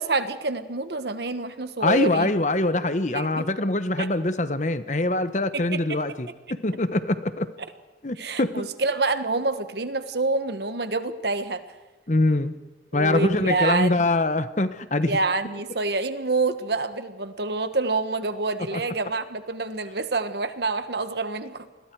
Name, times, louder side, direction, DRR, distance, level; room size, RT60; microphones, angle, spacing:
voice 1, 0.0-2.3 3.1-3.5 4.0-4.1 5.5-6.0 8.2-11.6 12.9-13.9 15.1-21.7, right 3 dB, 65° right, 10 dB, 1.5 m, -27 dB
voice 2, 1.8-6.3 6.6-7.5 8.0-8.7 12.1-12.5 12.9-15.2 18.7-18.8, left 2 dB, 40° left, 12 dB, 1.1 m, -23 dB
29.5 x 21.5 x 4.7 m, 1.2 s
head